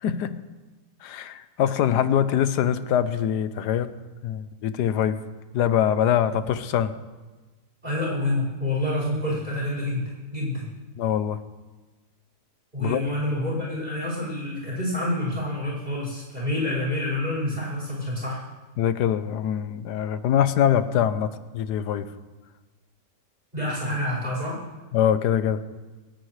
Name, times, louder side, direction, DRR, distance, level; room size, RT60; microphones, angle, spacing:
voice 1, 0.0-0.3 1.0-3.9 4.2-5.2 5.5-6.9 11.0-11.4 12.8-13.0 18.8-22.1 24.9-25.6, left 9 dB, 80° left, 12 dB, 1.3 m, -23 dB
voice 2, 7.8-10.7 12.7-18.4 23.5-24.6, left 1 dB, 25° right, -6 dB, 5.6 m, -28 dB
28.0 x 10.0 x 3.3 m, 1.2 s
omnidirectional pair, 1.8 m